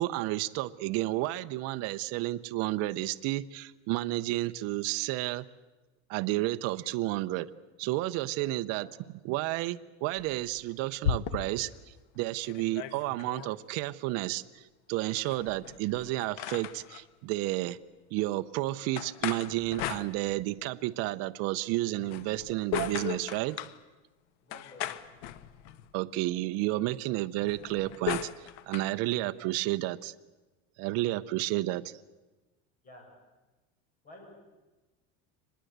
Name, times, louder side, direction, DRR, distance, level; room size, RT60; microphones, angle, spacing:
voice 1, 0.0-5.5 6.1-7.5 7.8-8.9 9.2-17.8 18.1-23.6 25.9-30.1 30.8-31.8, right 17 dB, 45° right, 10 dB, 0.7 m, -31 dB
sound 1, 10.2-11.7 12.2-12.3 12.4-13.5 15.2-17.0 19.0-20.6 22.0-23.8 24.5-25.9 27.4-28.9, left 9 dB, 85° left, 1.3 m, -37 dB
voice 2, 24.4-25.1 29.1-29.3 31.0-31.6 32.8-33.1 34.0-34.4, left 1 dB, 25° left, 0 dB, 6.5 m, -53 dB
24.5 x 20.5 x 8.0 m, 1.2 s
cardioid pair, 170°, 35 cm